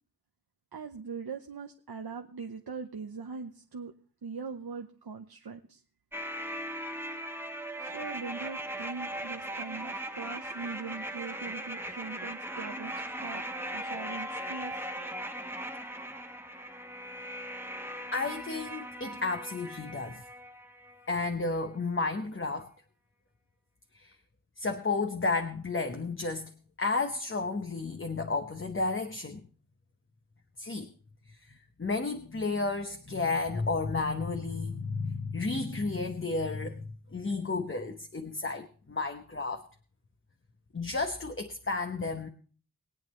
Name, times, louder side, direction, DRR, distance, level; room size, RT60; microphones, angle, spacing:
voice 1, 0.7-3.9 4.2-5.8 7.8-13.4 13.7-14.9, right 5 dB, 75° right, 4 dB, 0.9 m, -41 dB
sound 1, 6.1-21.1 21.4-21.5, right 1 dB, 5° right, 1.1 m, -39 dB
voice 2, 18.1-20.2 21.1-22.7 24.0-24.1 24.6-26.5 26.8-29.4 30.6-30.9 31.4-36.8 37.1-39.6 40.7-42.3, left 3 dB, 35° left, 6 dB, 0.9 m, -32 dB
21.5 x 8.8 x 3.2 m, 0.41 s
wide cardioid pair, 80°, 38 cm